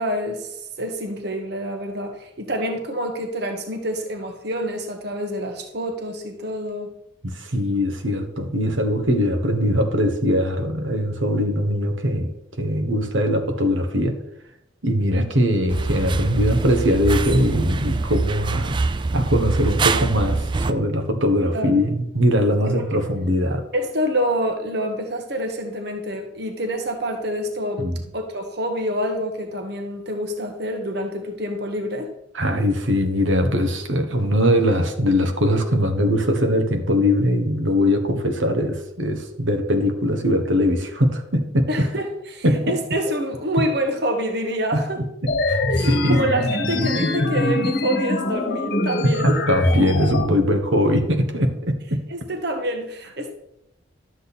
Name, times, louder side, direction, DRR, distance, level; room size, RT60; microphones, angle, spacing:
voice 1, 0.0-6.9 15.1-15.2 21.5-21.7 22.8-23.0 23.7-27.9 28.1-32.1 41.7-45.0 45.7-49.4 52.1-53.3, equal, 55° right, 4 dB, 1.3 m, -27 dB
voice 2, 7.2-14.2 14.8-18.8 19.1-23.6 27.8-28.0 32.3-41.9 42.4-42.8 43.6-43.7 44.7-44.8 45.2-46.2 49.0-52.0, equal, 85° right, 5 dB, 1.4 m, -21 dB
sound 1, 15.7-20.7, right 3 dB, 25° right, 0.3 m, -24 dB
sound 2, 45.3-50.3, left 2 dB, 55° left, 1.2 m, -23 dB
12.0 x 7.8 x 4.2 m, 0.81 s
head